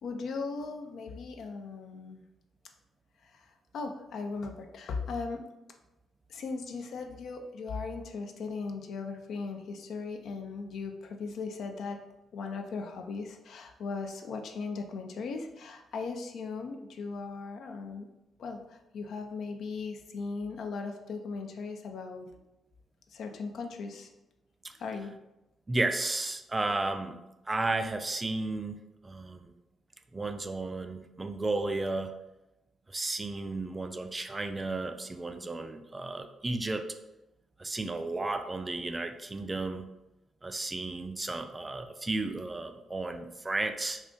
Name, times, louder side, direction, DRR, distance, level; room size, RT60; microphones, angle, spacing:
voice 1, 0.0-2.2 3.2-5.4 6.3-12.0 12.3-18.1 18.4-22.3 23.1-24.1 24.8-25.2, left 4 dB, 65° left, 4 dB, 0.4 m, -38 dB
voice 2, 25.7-27.2 27.5-28.8 29.0-29.5 30.1-32.1 32.9-36.9 37.6-39.9 40.4-44.0, right 2 dB, 25° right, 7 dB, 0.3 m, -33 dB
2.4 x 2.4 x 3.7 m, 0.94 s
hypercardioid pair, 45°, 0 cm